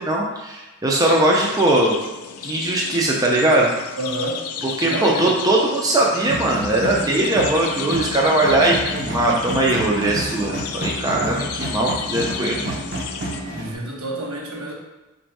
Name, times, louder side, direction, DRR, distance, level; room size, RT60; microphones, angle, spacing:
voice 1, 0.0-2.0 2.4-3.7 4.8-12.8, right 1 dB, 15° right, -3 dB, 0.4 m, -20 dB
sound 1, 1.1-13.4, left 7 dB, 75° left, 0.4 m, -33 dB
voice 2, 4.0-4.4 4.8-5.3 13.5-14.7, right 1 dB, 75° right, -2 dB, 1.0 m, -28 dB
sound 2, 6.2-13.7, right 1 dB, 50° right, 0.8 m, -30 dB
4.1 x 2.6 x 4.5 m, 1.1 s
head